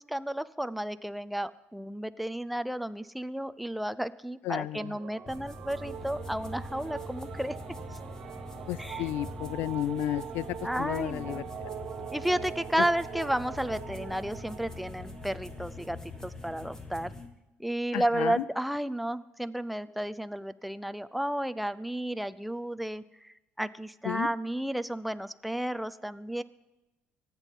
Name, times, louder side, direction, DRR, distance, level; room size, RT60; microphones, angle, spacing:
voice 1, 0.0-7.6 8.8-9.1 10.6-11.4 12.1-16.0 16.2-17.1 17.6-26.4, right 1 dB, ahead, 12 dB, 0.5 m, -32 dB
voice 2, 4.4-4.9 8.7-11.8 12.8-12.9 17.9-18.4 24.0-24.3, left 14 dB, 75° left, 19 dB, 0.4 m, -33 dB
sound 1, 4.7-16.6, right 9 dB, 40° right, 0.7 m, -43 dB
sound 2, 5.3-17.3, left 2 dB, 15° left, 1.7 m, -43 dB
25.0 x 9.1 x 5.4 m, 1.0 s
cardioid pair, 140°, 4 cm